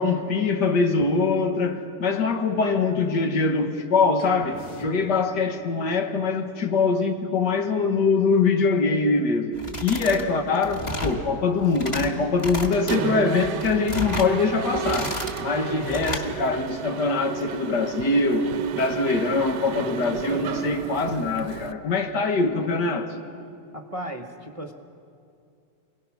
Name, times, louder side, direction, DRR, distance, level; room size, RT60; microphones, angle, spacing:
voice 1, 0.0-9.6 9.8-18.5 18.7-23.1, left 4 dB, 80° left, 1.9 m, -23 dB
sound 1, 4.2-5.3, left 2 dB, 55° left, 1.8 m, -45 dB
sound 2, 9.5-10.2 10.5-11.2 11.6-12.1 12.4-13.0 13.4-14.3 14.7-15.4 15.8-16.3, equal, 20° left, 1.6 m, -32 dB
Mechanisms, 12.7-21.7, right 9 dB, 80° right, 1.3 m, -33 dB
voice 2, 23.7-24.7, right 1 dB, 25° right, 0.8 m, -35 dB
27.0 x 18.0 x 5.9 m
omnidirectional pair, 1.8 m